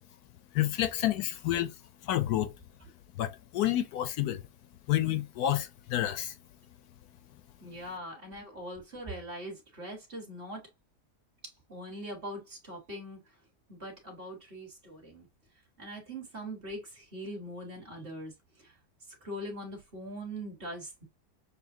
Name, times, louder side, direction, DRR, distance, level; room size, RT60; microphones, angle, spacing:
voice 1, 0.5-1.7 2.0-2.5 3.2-4.4 4.9-6.3, left 12 dB, 80° left, 1.1 m, -29 dB
voice 2, 7.6-10.7 11.4-13.3 13.7-15.3 15.8-18.8 19.1-21.1, equal, 35° right, 1.7 m, -42 dB
6.9 x 2.4 x 2.6 m
omnidirectional pair, 1.7 m